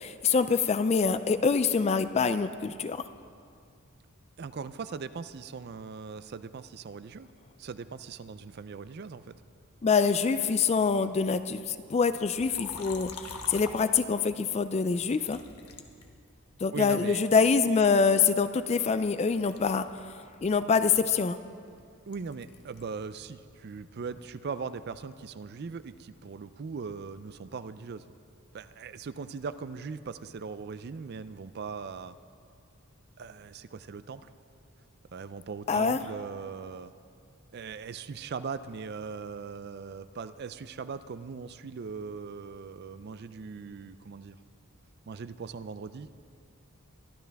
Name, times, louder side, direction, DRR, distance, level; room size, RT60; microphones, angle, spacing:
voice 1, 0.0-3.0 9.8-15.4 16.6-21.4 35.7-36.0, left 5 dB, 30° left, 11 dB, 0.3 m, -25 dB
voice 2, 4.4-7.3 7.6-9.3 16.7-17.4 22.1-28.1 28.5-32.1 33.2-34.3 35.1-36.9 37.5-44.4 45.1-46.2, right 5 dB, 45° right, 13 dB, 0.4 m, -40 dB
Liquid, 12.4-14.4 15.2-16.7 17.3-19.1 19.3-23.0 23.3-24.9, left 4 dB, 90° left, 1.2 m, -47 dB
23.5 x 12.5 x 3.5 m, 2.3 s
head